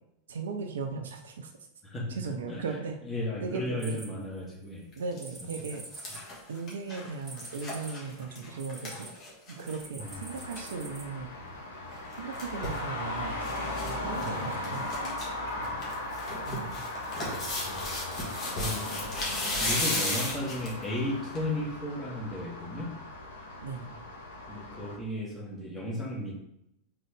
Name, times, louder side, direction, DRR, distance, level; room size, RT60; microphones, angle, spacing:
voice 1, 0.3-1.5 2.1-3.0 3.4-4.0 5.0-5.8 6.5-9.1 9.5-11.3 12.2-15.0 16.5-16.8 23.6-23.9, right 4 dB, 65° right, 5 dB, 0.5 m, -37 dB
voice 2, 1.8-2.2 2.5-2.6 3.0-4.9 10.0-10.2 14.2-14.4 14.6-14.8 15.5-15.8 17.5-17.8 18.5-19.0 19.6-22.9 24.5-26.3, left 1 dB, 15° left, -4 dB, 1.6 m, -35 dB
sound 1, 3.8-4.6 5.2-9.1 9.6-11.0, right 2 dB, 15° right, 0.9 m, -46 dB
sound 2, 4.9-5.2 5.6-9.8 10.1-10.2 10.4-10.7 11.9-12.8 13.4-13.9 14.2-14.3 14.6-15.3 15.6-20.8 21.4-21.5, left 2 dB, 30° left, 1.5 m, -35 dB
Traffic noise roadway noise, 10.0-24.9, left 2 dB, 65° left, 1.2 m, -38 dB
3.9 x 3.8 x 3.4 m, 0.79 s
figure-of-eight pair, 90°, 0 cm